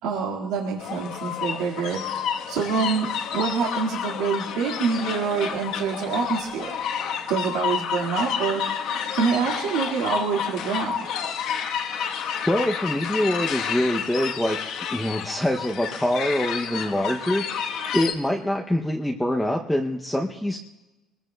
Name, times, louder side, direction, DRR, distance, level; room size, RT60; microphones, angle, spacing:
voice 1, 0.0-6.7 7.3-8.6 9.1-11.1, right 6 dB, 90° right, -1 dB, 1.9 m, -26 dB
sound 1, 0.8-18.1, left 8 dB, 55° left, 1.1 m, -30 dB
voice 2, 12.3-20.6, left 1 dB, 5° left, 0 dB, 0.6 m, -25 dB
25.5 x 20.5 x 2.2 m, 1.1 s
cardioid pair, 175°, 0 cm